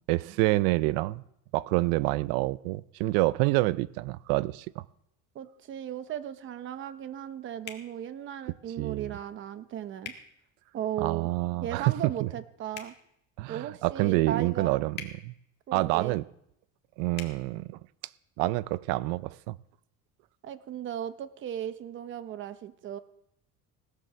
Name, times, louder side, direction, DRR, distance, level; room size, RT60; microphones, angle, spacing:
voice 1, 0.1-1.2 1.5-4.8 8.8-9.2 11.0-11.9 12.2-12.3 13.4-15.3 15.7-16.2 17.0-17.8 18.4-19.6, right 20 dB, 85° right, 19 dB, 0.6 m, -27 dB
voice 2, 5.3-10.1 10.7-11.3 11.6-12.9 13.5-14.8 15.7-16.2 20.4-23.0, right 10 dB, 35° right, 12 dB, 0.9 m, -36 dB
sound 1, 7.6-7.9 10.0-10.2 12.7-12.9 14.9-15.1 17.1-17.3, left 7 dB, 30° left, 1.7 m, -41 dB
18.0 x 7.5 x 6.8 m, 0.76 s
cardioid pair, 165°, 34 cm